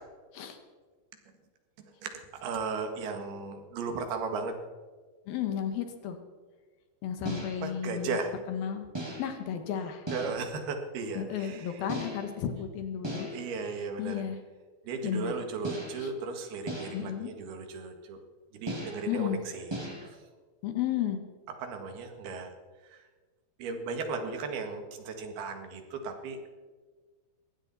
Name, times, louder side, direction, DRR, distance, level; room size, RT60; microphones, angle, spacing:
voice 1, 2.0-4.5 7.6-8.4 10.1-11.9 13.3-14.2 14.9-18.2 18.5-20.2 21.6-22.5 22.8-23.1 23.6-26.4, right 4 dB, 85° right, 5 dB, 3.8 m, -36 dB
voice 2, 5.3-6.2 7.0-8.2 8.5-8.9 9.2-10.1 11.1-13.3 14.0-14.4 15.0-15.3 16.0-16.1 16.9-17.3 19.1-19.4 20.6-21.2, left 9 dB, 75° left, 7 dB, 3.2 m, -33 dB
sound 1, 7.2-7.7 8.9-9.4 10.1-10.6 11.9-12.5 13.0-13.6 15.6-16.1 16.7-17.2 18.7-19.2 19.7-20.1, right 1 dB, 25° right, 0.5 m, -38 dB
21.0 x 16.5 x 4.2 m, 1.4 s
omnidirectional pair, 4.3 m